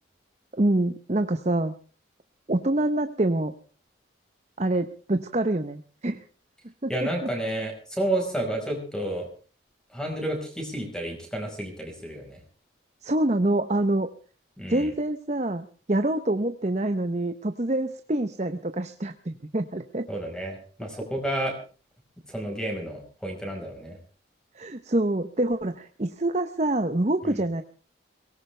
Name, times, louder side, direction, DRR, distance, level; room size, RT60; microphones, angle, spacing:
voice 1, 0.5-1.7 2.5-3.5 4.6-6.2 6.8-7.1 13.0-14.1 14.7-20.1 24.6-27.6, right 1 dB, 35° right, 8 dB, 0.8 m, -26 dB
voice 2, 6.9-9.3 9.9-12.4 14.6-14.9 20.1-21.5 22.3-24.0 27.2-27.4, right 1 dB, 5° left, 3 dB, 4.9 m, -31 dB
22.5 x 18.5 x 3.4 m, 0.38 s
head